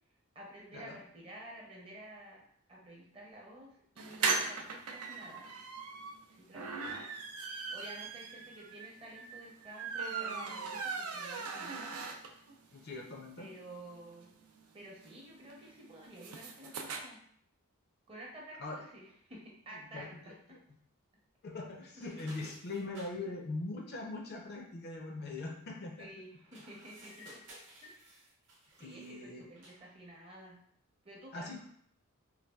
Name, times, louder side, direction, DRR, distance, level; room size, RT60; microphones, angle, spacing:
voice 1, 0.3-2.4 2.7-5.5 6.3-6.9 7.7-12.1 13.4-14.3 14.7-17.2 18.1-20.6 26.0-27.4 27.8-28.3 28.7-30.6 31.0-31.6, right 1 dB, 25° right, -3 dB, 0.7 m, -51 dB
sound 1, 4.0-12.6 12.9-13.0 13.3-13.4 13.6-17.0, right 4 dB, 80° right, 0.4 m, -39 dB
voice 2, 12.7-13.5 18.6-18.8 19.7-20.6 21.4-26.1 28.8-29.5 31.3-31.6, left 2 dB, 45° left, 0 dB, 0.5 m, -42 dB
sound 2, 22.0-23.2 26.4-29.2 29.5-29.9, right 2 dB, 55° right, 0.9 m, -56 dB
sound 3, 27.0-28.1, left 5 dB, 85° left, 1.0 m, -57 dB
4.0 x 2.3 x 2.2 m, 0.65 s
head